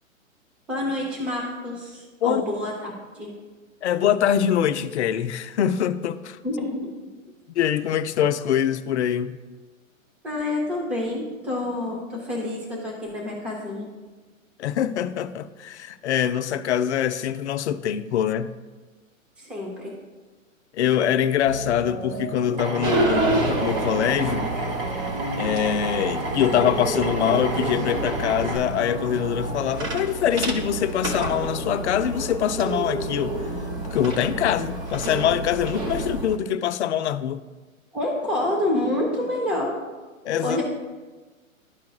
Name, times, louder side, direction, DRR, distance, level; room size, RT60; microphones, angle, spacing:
voice 1, 0.7-3.4 6.4-7.1 10.2-13.9 19.4-19.9 37.9-39.7 40.4-40.6, left 1 dB, 5° right, 0.4 m, -28 dB
voice 2, 3.8-6.4 7.6-9.4 14.6-18.6 20.7-24.5 25.4-33.4 33.9-37.4 40.2-40.6, left 9 dB, 55° left, 0.6 m, -24 dB
sound 1, 21.4-29.7, equal, 85° right, 1.9 m, -35 dB
Drill, 22.6-28.6, right 3 dB, 45° right, 1.1 m, -31 dB
sound 2, 22.8-36.4, right 2 dB, 25° right, 0.9 m, -29 dB
12.5 x 4.7 x 2.3 m
hypercardioid pair, 135°, 41 cm